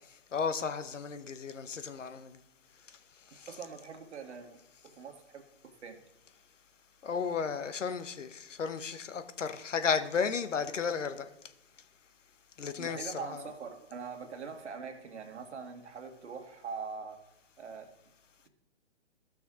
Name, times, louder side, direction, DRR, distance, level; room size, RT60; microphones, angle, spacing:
voice 1, 0.3-2.4 3.4-3.5 7.0-11.3 12.6-13.5, left 6 dB, 85° left, 10 dB, 1.0 m, -34 dB
voice 2, 3.5-6.0 12.8-17.3 17.6-17.9, right 5 dB, 65° right, 5 dB, 1.8 m, -43 dB
15.5 x 6.2 x 3.7 m, 0.89 s
hypercardioid pair, 140°, 36 cm